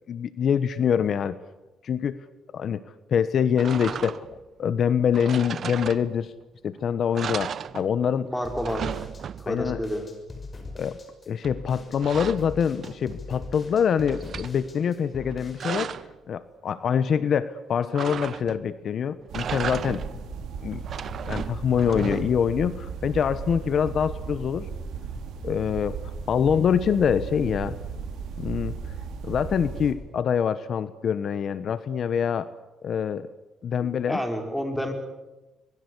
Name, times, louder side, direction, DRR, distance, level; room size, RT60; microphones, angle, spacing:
voice 1, 0.1-1.4 1.8-2.2 2.5-2.8 3.1-6.3 6.6-8.3 9.5-9.8 10.7-11.0 11.3-15.9 16.3-20.0 20.6-20.8 21.2-24.7 25.4-26.0 26.3-27.8 28.4-28.7 29.2-32.5 32.8-33.3 33.6-34.2, left 7 dB, 60° left, 14 dB, 1.1 m, -25 dB
sound 1, 3.6-4.4 5.1-6.4 6.8-6.9 7.1-8.2 8.5-9.7 11.4-13.2 13.6-14.5 15.2-16.2 17.9-18.7 19.2-20.2 20.7-22.5, right 8 dB, 60° right, 0.9 m, -35 dB
voice 2, 8.2-8.8 9.4-10.1 21.9-22.2 33.8-34.9, equal, 5° left, 5 dB, 5.8 m, -30 dB
sound 2, 8.4-15.7, left 3 dB, 35° left, 6.5 m, -41 dB
sound 3, 19.3-29.9, right 5 dB, 80° right, 4.9 m, -36 dB
25.5 x 22.0 x 8.3 m, 1.1 s
cardioid pair, 90°, 0 cm